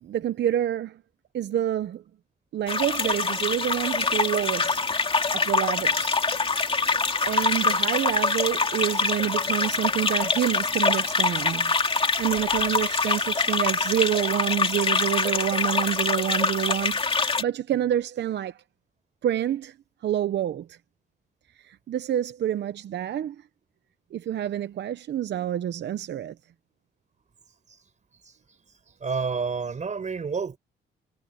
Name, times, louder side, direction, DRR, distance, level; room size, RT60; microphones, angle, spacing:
voice 1, 0.0-1.0 1.3-2.0 2.5-4.9 5.3-6.2 7.3-18.6 19.2-19.7 20.0-20.8 21.6-23.4 24.1-26.3, right 11 dB, 60° right, 0.9 m, -28 dB
sound 1, 2.7-17.4, left 4 dB, 25° left, 2.3 m, -25 dB
voice 2, 29.0-30.6, right 5 dB, 40° right, 4.7 m, -29 dB
cardioid pair, 90°, 20 cm